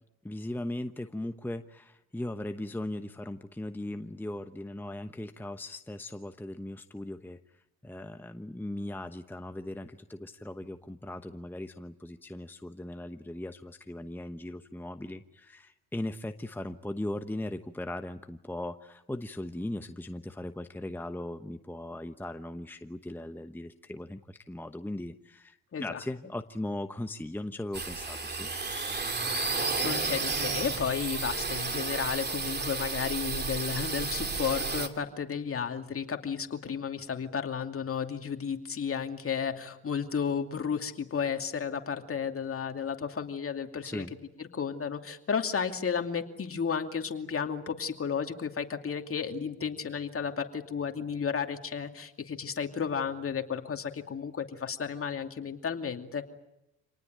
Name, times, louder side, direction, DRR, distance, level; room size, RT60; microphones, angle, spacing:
voice 1, 0.2-28.5 43.8-44.1, left 1 dB, 5° left, 8 dB, 1.0 m, -38 dB
sound 1, 27.7-34.9, right 4 dB, 30° right, 2.7 m, -32 dB
voice 2, 29.5-44.0 44.5-56.2, left 6 dB, 40° left, 5 dB, 2.6 m, -33 dB
27.0 x 19.0 x 9.1 m, 0.92 s
supercardioid pair, 65°, 35 cm